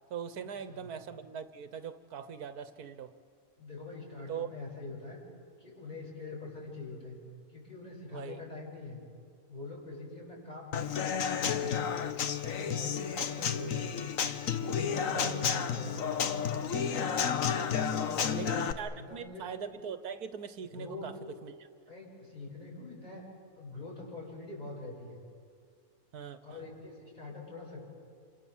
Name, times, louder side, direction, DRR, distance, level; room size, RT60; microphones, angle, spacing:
voice 1, 0.1-3.1 4.3-4.5 8.1-8.4 15.1-15.4 18.3-21.1 21.4-21.7 26.1-26.6, right 7 dB, 80° right, 11 dB, 1.5 m, -41 dB
voice 2, 3.6-5.2 5.6-7.2 7.5-9.0 9.5-11.9 12.3-14.2 14.6-17.1 17.7-18.6 18.9-19.5 20.8-21.1 21.9-23.2 23.6-25.2 26.4-27.8, left 3 dB, 30° left, -3 dB, 7.6 m, -44 dB
Human voice / Acoustic guitar / Drum, 10.7-18.7, left 7 dB, 60° left, 1.4 m, -31 dB
28.5 x 25.5 x 7.3 m, 2.2 s
omnidirectional pair, 1.6 m